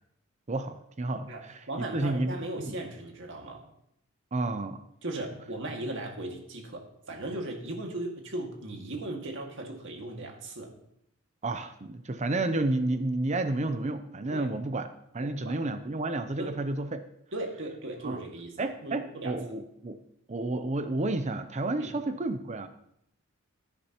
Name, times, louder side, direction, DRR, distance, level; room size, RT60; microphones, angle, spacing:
voice 1, 0.5-1.6 1.9-2.7 4.3-4.8 11.4-14.9 15.1-17.0 18.0-18.2 18.6-20.0 20.3-22.7, right 2 dB, 35° right, 9 dB, 0.6 m, -31 dB
voice 2, 1.3-3.6 5.0-10.7 14.3-14.5 15.2-15.6 16.4-16.6 17.3-19.3 21.8-21.9, right 2 dB, 60° right, 1 dB, 2.1 m, -37 dB
15.0 x 10.0 x 3.0 m, 0.74 s
head